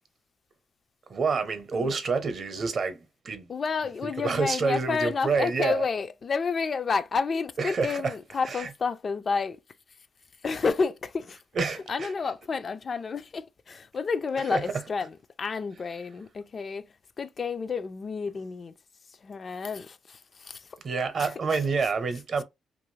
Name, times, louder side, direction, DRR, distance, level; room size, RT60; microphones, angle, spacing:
voice 1, 1.1-3.5 4.2-5.8 7.6-8.1 8.4-8.7 11.5-12.1 14.5-14.6 20.8-22.4, right 4 dB, 50° right, 0.7 m, -28 dB
voice 2, 3.5-9.6 10.4-11.4 11.9-16.9 17.2-18.7 19.2-20.7 21.2-21.6, left 5 dB, 40° left, 0.3 m, -30 dB
2.7 x 2.5 x 3.1 m
cardioid pair, 90°, 0 cm